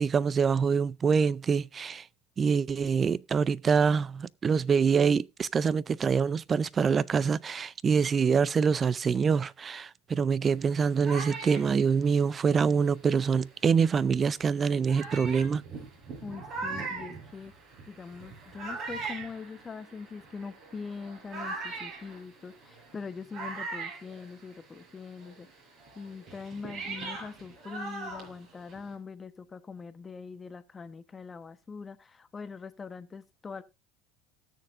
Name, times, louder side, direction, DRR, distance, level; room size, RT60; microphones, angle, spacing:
voice 1, 0.0-2.1 2.4-15.6, right 6 dB, 30° right, 0.4 m, -25 dB
sound 1, 10.6-13.6 14.3-14.4 14.9-24.9 25.2-28.9, right 3 dB, 50° right, 6.9 m, -40 dB
voice 2, 16.2-17.5 17.9-25.5 25.9-33.6, left 5 dB, 25° left, 1.1 m, -42 dB
18.5 x 6.7 x 2.6 m
supercardioid pair, 105°, 0 cm